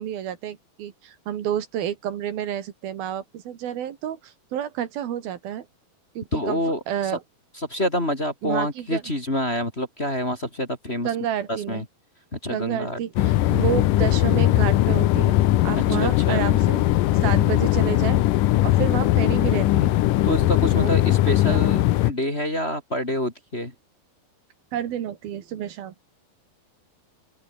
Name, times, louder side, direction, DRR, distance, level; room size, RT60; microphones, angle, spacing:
voice 1, 0.0-5.7 6.2-6.6 6.9-7.2 8.4-9.0 11.0-11.9 12.5-15.4 15.6-16.8 17.2-18.2 18.6-20.0 20.4-20.5 20.8-21.0 21.3-21.6 24.7-25.9, right 10 dB, 70° right, 3.6 m, -30 dB
voice 2, 6.3-7.1 7.5-11.1 11.5-11.8 12.3-13.3 15.7-16.4 20.2-23.7, left 1 dB, 15° left, 3.0 m, -27 dB
sound 1, 13.2-22.1, left 15 dB, 70° left, 2.3 m, -20 dB
open air
omnidirectional pair, 4.4 m